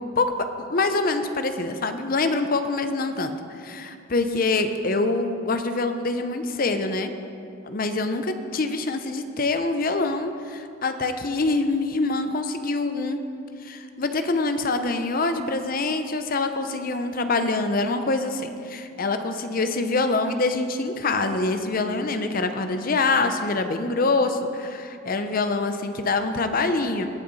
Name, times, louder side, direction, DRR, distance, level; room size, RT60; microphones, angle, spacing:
voice 1, 0.7-7.1 7.6-13.2 13.6-27.1, left 3 dB, 45° left, 8 dB, 0.6 m, -25 dB
19.5 x 6.6 x 4.1 m, 2.5 s
head